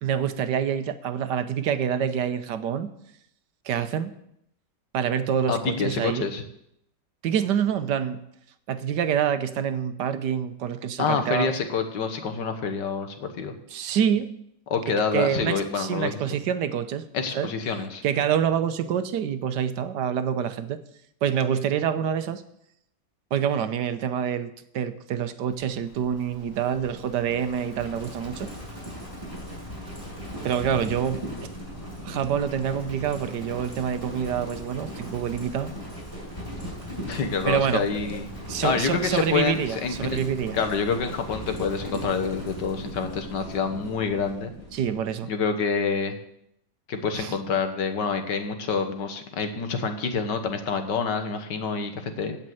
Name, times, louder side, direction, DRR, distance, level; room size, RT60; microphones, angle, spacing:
voice 1, 0.0-2.9 3.6-4.1 4.9-6.3 7.2-8.2 8.7-11.5 13.7-14.3 14.9-17.0 17.3-17.5 18.0-20.8 21.2-22.4 23.3-28.5 30.4-31.5 32.0-35.7 37.5-38.2 38.5-40.6 44.7-45.3 47.1-47.3, right 8 dB, 75° right, 10 dB, 1.5 m, -26 dB
voice 2, 5.5-6.4 11.0-13.6 14.7-16.1 17.1-18.0 37.1-38.3 38.6-40.2 40.5-44.5 45.3-46.2 46.9-52.4, left 5 dB, 85° left, 7 dB, 1.9 m, -27 dB
Livestock farm animals working animals, 25.5-45.2, equal, 20° left, 5.3 m, -38 dB
16.0 x 5.4 x 7.7 m, 0.75 s
omnidirectional pair, 1.8 m